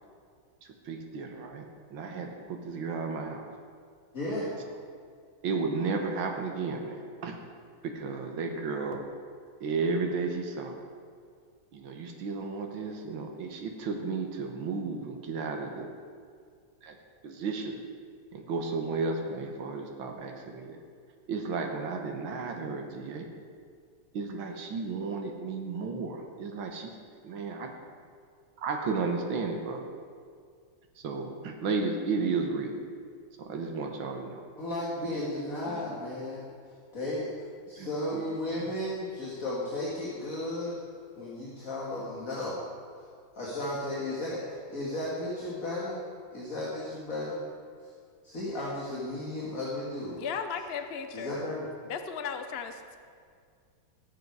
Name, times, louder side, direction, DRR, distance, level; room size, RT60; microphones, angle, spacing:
voice 1, 0.6-1.6 1.9-3.4 5.4-7.4 7.8-9.1 9.6-10.8 11.7-15.9 16.8-17.0 17.2-17.8 18.3-20.8 21.3-23.3 24.1-27.0 27.2-27.7 28.6-29.8 31.0-32.8 33.4-34.4 35.6-35.8 37.8-38.2 38.5-38.7, right 4 dB, 85° right, 3 dB, 2.0 m, -33 dB
voice 2, 4.1-4.5 34.6-40.8 41.2-42.6 43.0-43.1 43.3-46.0 46.3-47.4 47.8-47.9 48.2-50.2 51.1-51.7, left 1 dB, 45° left, -6 dB, 2.4 m, -34 dB
voice 3, 50.1-51.4 51.8-53.0, left 6 dB, 60° left, 7 dB, 0.6 m, -36 dB
19.5 x 7.9 x 4.7 m, 2.2 s
omnidirectional pair, 2.1 m